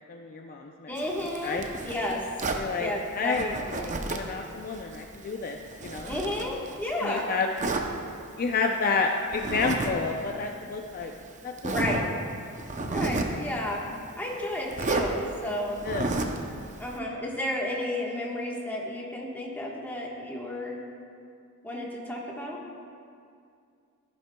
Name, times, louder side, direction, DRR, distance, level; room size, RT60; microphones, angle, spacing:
voice 1, 0.0-0.9 1.4-1.7 2.5-2.9 3.2-3.6 4.1-6.1 7.0-7.5 8.4-11.1 11.4-12.0 12.8-12.9 15.8-16.0, left 4 dB, 40° left, 2 dB, 0.5 m, -30 dB
voice 2, 0.9-2.2 2.7-4.0 6.0-7.2 11.7-12.1 12.9-13.8 14.2-15.8 16.8-20.8 21.6-22.6, left 1 dB, 10° left, -3 dB, 1.3 m, -32 dB
Zipper (clothing), 1.0-2.7 3.3-4.4 4.7-7.0 7.6-7.9 9.3-9.9 10.2-10.3 11.0-11.1 11.6-12.1 12.6-13.4 14.7-15.1 15.8-16.4, right 3 dB, 35° right, 0.6 m, -31 dB
14.0 x 10.5 x 2.2 m, 2.4 s
head